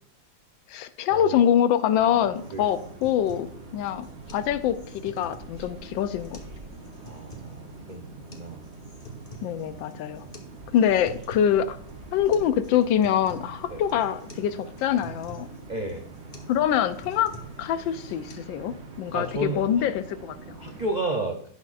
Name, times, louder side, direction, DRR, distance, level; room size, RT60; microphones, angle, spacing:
voice 1, 0.7-3.5 3.7-4.1 4.3-4.8 5.0-6.4 9.4-10.2 10.7-11.8 12.1-15.5 16.5-20.6, left 9 dB, 80° left, 12 dB, 1.4 m, -24 dB
sound 1, 1.9-20.9, right 3 dB, 40° right, 1.2 m, -44 dB
sound 2, 2.3-18.3, right 1 dB, 35° left, 1.3 m, -48 dB
voice 2, 7.0-8.1 8.3-8.6 10.2-10.3 13.7-13.8 15.7-16.1 19.1-19.9 20.6-21.4, right 2 dB, 90° right, 3 dB, 0.4 m, -32 dB
16.5 x 6.3 x 2.5 m, 0.64 s
omnidirectional pair, 2.1 m